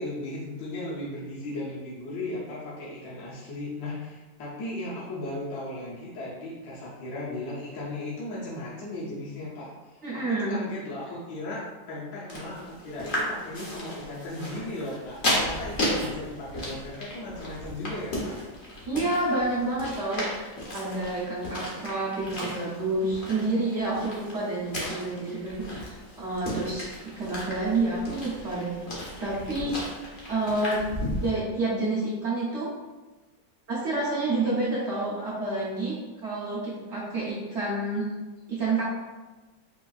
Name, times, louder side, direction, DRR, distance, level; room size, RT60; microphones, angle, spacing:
voice 1, 0.0-18.4, left 1 dB, 65° left, -7 dB, 1.1 m, -36 dB
voice 2, 10.0-10.6 18.9-26.9 27.2-29.7 30.3-30.8 31.2-32.7 33.7-38.1 38.5-38.8, right 2 dB, 65° right, -7 dB, 0.7 m, -29 dB
sound 1, 12.3-31.3, left 1 dB, 80° left, 0.4 m, -35 dB
4.3 x 2.3 x 2.3 m, 1.2 s
omnidirectional pair, 2.1 m